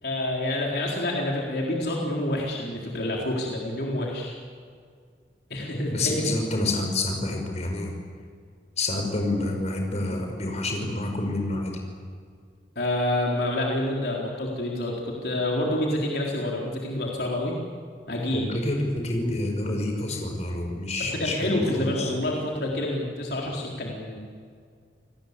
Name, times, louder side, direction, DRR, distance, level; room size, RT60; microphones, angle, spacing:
voice 1, 0.0-4.3 5.5-6.2 12.8-17.6 18.1-18.5 21.0-24.2, left 1 dB, 65° left, -2 dB, 4.1 m, -28 dB
voice 2, 5.9-7.9 8.8-11.8 18.3-22.1, left 2 dB, 40° left, 2 dB, 5.5 m, -28 dB
29.0 x 19.0 x 8.4 m, 2.1 s
head